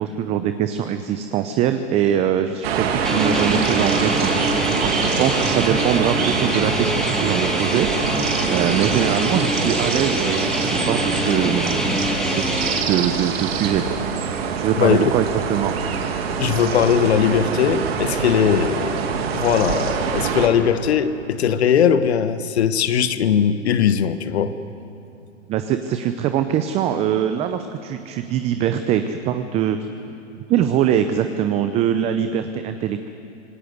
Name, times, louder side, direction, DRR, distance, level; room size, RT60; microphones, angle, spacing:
voice 1, 0.0-4.3 4.8-7.9 8.5-14.0 14.6-15.7 25.5-29.8 30.0-30.1 30.5-33.2, right 10 dB, 15° right, 9 dB, 0.6 m, -22 dB
sound 1, 2.6-20.5, right 6 dB, 55° right, 2.7 m, -25 dB
sound 2, 3.0-12.8, equal, ahead, 2.0 m, -24 dB
voice 2, 14.8-15.1 16.4-24.5, left 8 dB, 60° left, 12 dB, 1.3 m, -19 dB
26.5 x 19.5 x 8.1 m, 2.7 s
hypercardioid pair, 125°, 37 cm